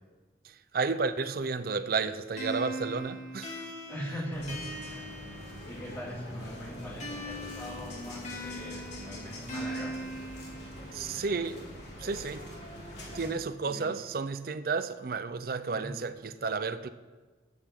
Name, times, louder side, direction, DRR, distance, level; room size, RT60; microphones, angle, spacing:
voice 1, 0.4-3.7 10.9-11.7 12.0-12.5 13.1-16.9, right 4 dB, 55° right, 0.5 m, -32 dB
sound 1, 2.4-6.0 7.0-11.0, equal, 40° left, 2.3 m, -41 dB
voice 2, 3.9-5.3 5.6-9.9 13.7-14.0 15.7-15.9, equal, 10° left, 2.2 m, -41 dB
sound 2, 4.3-13.3, equal, 70° left, 3.6 m, -44 dB
21.0 x 8.6 x 3.7 m
head